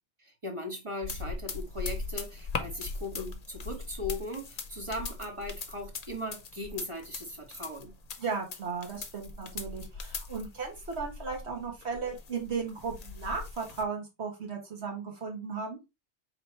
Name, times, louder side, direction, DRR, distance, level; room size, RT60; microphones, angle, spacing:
voice 1, 0.2-7.9, left 1 dB, 30° right, 1.1 m, -38 dB
sound 1, 1.0-13.8, left 4 dB, 45° left, 0.6 m, -40 dB
voice 2, 8.2-15.8, right 5 dB, 70° right, 1.5 m, -36 dB
4.6 x 3.3 x 3.1 m
omnidirectional pair, 1.2 m